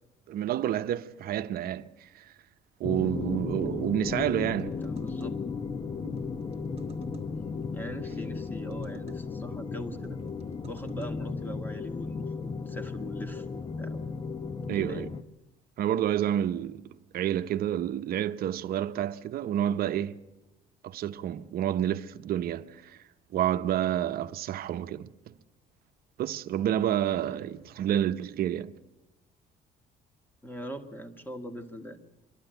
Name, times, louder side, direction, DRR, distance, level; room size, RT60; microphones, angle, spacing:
voice 1, 0.3-2.3 2.8-4.7 14.7-15.1 15.8-20.2 20.8-23.0 23.3-25.3 26.2-28.7, right 11 dB, 65° right, 0.9 m, -29 dB
sound 1, 2.8-15.2, left 5 dB, 30° left, 0.9 m, -35 dB
sound 2, 4.1-5.3 6.0-7.3 8.0-9.2 9.9-11.1, right 7 dB, 35° right, 1.4 m, -50 dB
voice 2, 4.7-5.4 7.7-10.2 10.7-14.0 14.8-15.1 30.4-32.0, equal, 10° left, 2.1 m, -41 dB
26.0 x 12.0 x 9.2 m
cardioid pair, 110°, 17 cm